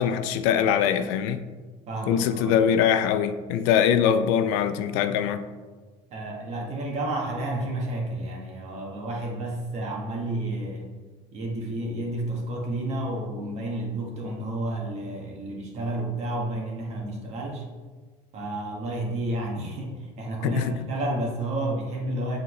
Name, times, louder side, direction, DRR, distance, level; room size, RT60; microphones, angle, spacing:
voice 1, 0.0-1.4 2.1-5.4 20.4-20.7, left 8 dB, 85° left, 0.5 m, -22 dB
voice 2, 1.9-2.6 6.1-10.9 11.3-17.7 18.3-22.4, right 1 dB, 50° right, 1.5 m, -31 dB
7.8 x 4.0 x 3.2 m
cardioid pair, 125°, 14 cm